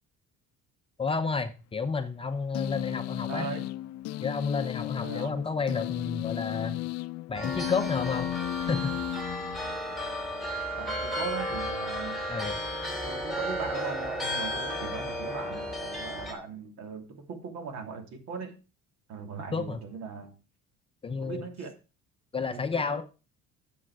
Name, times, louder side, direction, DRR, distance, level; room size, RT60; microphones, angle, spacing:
voice 1, 1.0-3.5 4.2-6.8 7.3-8.3 8.7-9.2 12.3-12.6 19.5-19.8 21.0-21.5 22.3-23.0, left 4 dB, 20° left, 8 dB, 0.7 m, -31 dB
sound 1, 2.5-10.0, left 15 dB, 60° left, 0.5 m, -34 dB
voice 2, 3.3-3.6 5.0-5.4 10.8-12.3 13.0-18.5 19.1-20.3 21.2-21.7 22.5-23.0, right 5 dB, 65° right, 4 dB, 2.8 m, -39 dB
sound 2, 7.3-16.3, equal, ahead, 2.6 m, -34 dB
10.5 x 7.4 x 4.8 m, 0.32 s
cardioid pair, 165°, 29 cm